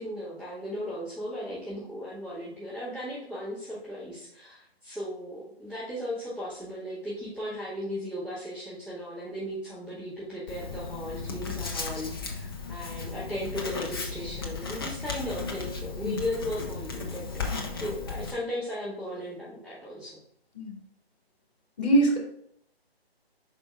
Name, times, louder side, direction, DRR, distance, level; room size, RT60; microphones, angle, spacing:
voice 1, 0.0-17.4 17.8-20.2, equal, 5° right, -17 dB, 2.1 m, -36 dB
Writing, 10.5-18.3, left 4 dB, 20° left, 0.6 m, -35 dB
voice 2, 21.8-22.2, right 1 dB, 40° left, -1 dB, 2.7 m, -23 dB
5.4 x 5.2 x 3.7 m, 0.69 s
figure-of-eight pair, 150°, 32 cm